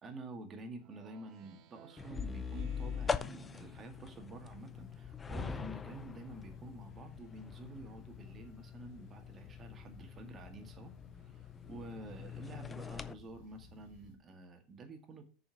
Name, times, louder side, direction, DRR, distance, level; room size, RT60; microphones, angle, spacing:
voice 1, 0.0-15.3, right 2 dB, 25° right, 6 dB, 1.9 m, -50 dB
Speech synthesizer, 0.8-4.3, right 12 dB, 50° right, 1.0 m, -58 dB
sound 1, 2.0-13.1, left 6 dB, 20° left, 0.5 m, -43 dB
sound 2, 2.3-14.2, left 6 dB, 65° left, 2.6 m, -58 dB
6.9 x 5.4 x 6.3 m, 0.37 s
supercardioid pair, 130°, 0 cm